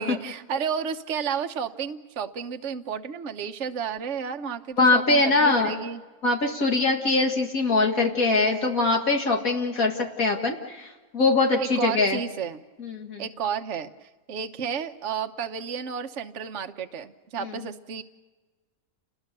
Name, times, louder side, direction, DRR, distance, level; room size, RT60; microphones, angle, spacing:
voice 1, 0.0-6.0 11.6-12.6 13.2-18.0, right 7 dB, 55° right, 6 dB, 1.3 m, -32 dB
voice 2, 4.8-5.7 6.2-12.2 12.8-13.2 17.4-17.7, left 3 dB, 70° left, 1 dB, 2.4 m, -23 dB
30.0 x 20.5 x 6.8 m, 1.3 s
omnidirectional pair, 1.5 m